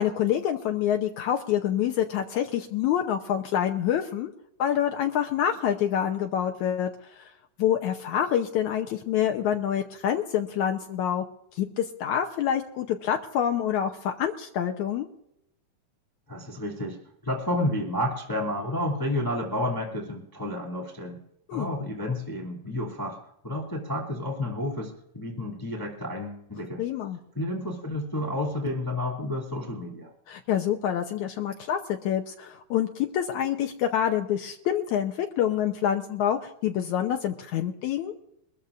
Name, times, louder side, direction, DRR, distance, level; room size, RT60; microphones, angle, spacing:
voice 1, 0.0-4.3 4.6-6.9 7.2-7.3 7.6-11.3 11.5-15.1 21.5-21.7 26.8-27.2 30.3-38.1, left 10 dB, 75° left, 3 dB, 2.1 m, -27 dB
voice 2, 16.3-17.0 17.2-21.2 21.5-23.2 23.4-26.8 27.3-30.1, left 1 dB, 5° left, -3 dB, 2.2 m, -30 dB
23.5 x 14.0 x 2.6 m, 0.79 s
omnidirectional pair, 3.8 m